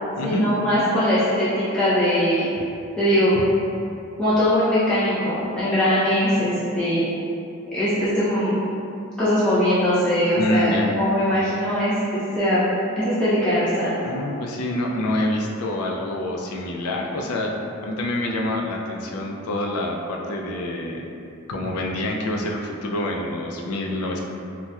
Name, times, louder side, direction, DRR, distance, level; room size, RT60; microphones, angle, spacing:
voice 1, 0.2-2.5 3.0-3.3 4.2-7.0 7.7-8.6 9.2-12.6 13.0-14.0, equal, 5° left, -13 dB, 0.5 m, -21 dB
voice 2, 10.4-10.9 14.0-17.5 17.8-21.1 21.5-24.2, left 1 dB, 85° left, 0 dB, 0.4 m, -26 dB
4.0 x 2.2 x 2.3 m, 2.6 s
head